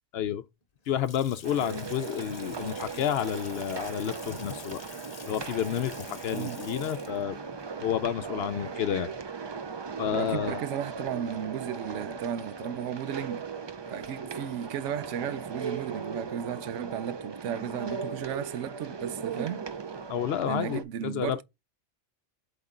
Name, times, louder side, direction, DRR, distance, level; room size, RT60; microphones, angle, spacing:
Water tap faucet / Sink (filling or washing) / Splash splatter, 0.6-9.5, left 5 dB, 40° left, 0.9 m, -49 dB
voice 1, 0.9-4.8 5.3-7.4 7.8-9.1 10.0-10.6 20.1-21.4, left 10 dB, 65° left, 0.7 m, -30 dB
sound 1, 1.4-20.8, right 5 dB, 45° right, 0.3 m, -38 dB
voice 2, 10.1-13.5 13.9-19.7 20.5-21.4, right 10 dB, 85° right, 0.9 m, -34 dB
7.9 x 3.6 x 3.7 m
omnidirectional pair, 1.2 m